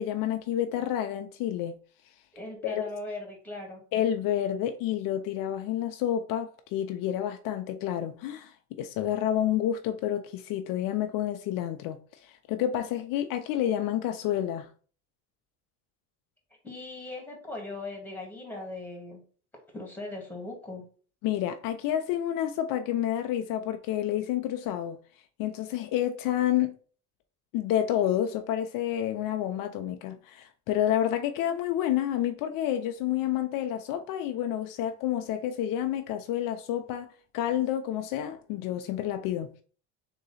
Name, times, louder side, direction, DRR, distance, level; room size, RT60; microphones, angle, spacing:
voice 1, 0.0-1.7 2.6-2.9 3.9-14.7 21.2-25.0 25.4-26.7 27.5-37.1 37.3-39.5, left 11 dB, 70° left, 0.6 m, -29 dB
voice 2, 2.3-3.8 16.6-19.2 19.7-20.9, left 2 dB, 5° left, 2.0 m, -39 dB
3.7 x 3.0 x 4.1 m
supercardioid pair, 95°, 35 cm